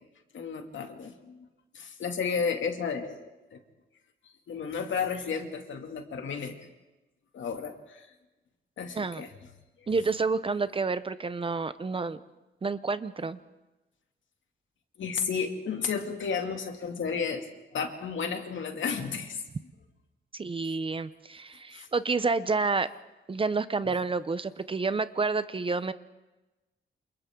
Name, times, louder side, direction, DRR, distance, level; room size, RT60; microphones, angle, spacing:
voice 1, 0.3-1.4 1.7-3.2 3.5-3.6 4.5-6.5 7.3-8.1 8.8-9.3 15.0-17.4 17.7-19.4 21.7-21.9, left 6 dB, 75° left, 4 dB, 2.5 m, -32 dB
voice 2, 9.9-12.2 12.6-13.4 20.3-22.9 23.3-25.9, right 4 dB, 25° right, 13 dB, 0.7 m, -29 dB
28.0 x 28.0 x 3.8 m, 1.1 s
wide cardioid pair, 145°, 20 cm